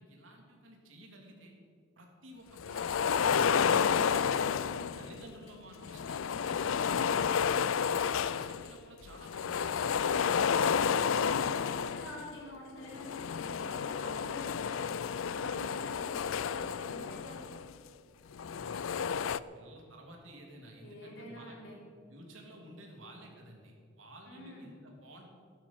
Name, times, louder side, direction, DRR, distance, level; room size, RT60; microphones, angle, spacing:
voice 1, 0.0-1.5 2.0-4.6 5.0-7.1 7.6-10.0 18.5-18.9 19.3-21.6 22.1-25.3, right 1 dB, 80° right, 1 dB, 3.2 m, -52 dB
sound 1, 2.6-5.2 5.8-8.7 9.1-12.3 12.9-17.7 18.3-19.4, left 7 dB, 90° left, 0.4 m, -31 dB
voice 2, 4.6-4.9 10.3-17.5 20.8-21.8 24.3-24.7, left 1 dB, 70° left, -3 dB, 4.4 m, -47 dB
16.0 x 11.5 x 6.2 m, 2.3 s
head